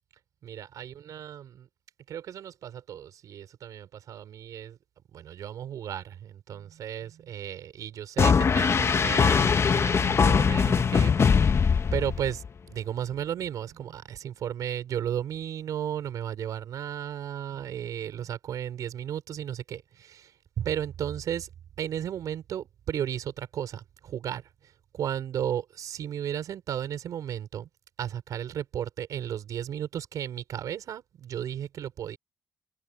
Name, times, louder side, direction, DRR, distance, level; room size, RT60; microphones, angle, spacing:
voice 1, 0.4-1.7 2.1-4.8 5.1-11.5 11.9-20.3 20.6-21.5 21.8-24.4 24.9-27.7 28.0-32.2, right 10 dB, 85° right, 5.3 m, -34 dB
sound 1, 8.2-12.5, left 6 dB, 50° left, 1.0 m, -22 dB
open air
cardioid pair, 75°, 6 cm